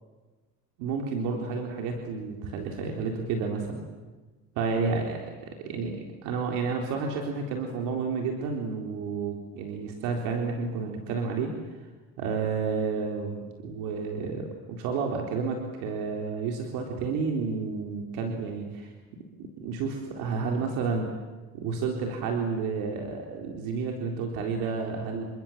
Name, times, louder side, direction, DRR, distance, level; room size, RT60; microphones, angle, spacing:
voice 1, 0.8-3.8 4.6-11.5 12.2-18.9 19.4-21.1 21.5-25.3, right 5 dB, 90° right, 2 dB, 4.0 m, -31 dB
30.0 x 25.5 x 7.5 m, 1.2 s
cardioid pair, 120°, 31 cm